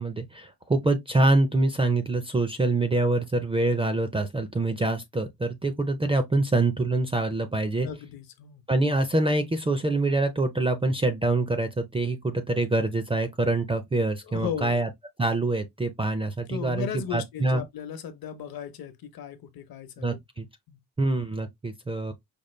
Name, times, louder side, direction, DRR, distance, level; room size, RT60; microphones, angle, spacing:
voice 1, 0.0-7.9 8.7-14.9 15.2-17.6 20.0-20.5 21.0-22.1, right 2 dB, 15° right, 0.4 m, -25 dB
voice 2, 7.8-8.6 14.2-14.8 16.5-20.8, left 8 dB, 60° left, 0.8 m, -36 dB
5.2 x 2.1 x 3.1 m
cardioid pair, 150°, 41 cm